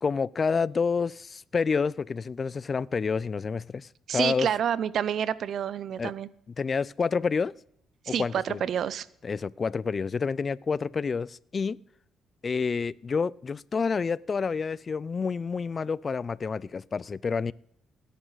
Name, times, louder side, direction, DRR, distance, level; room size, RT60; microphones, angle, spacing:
voice 1, 0.0-4.5 6.0-6.1 6.6-7.5 8.1-8.6 9.2-11.8 12.4-17.5, left 5 dB, 40° left, 0.4 m, -28 dB
voice 2, 4.1-6.3 8.1-9.1, right 9 dB, 65° right, 0.6 m, -28 dB
17.0 x 10.0 x 4.0 m
cardioid pair, 90°, 0 cm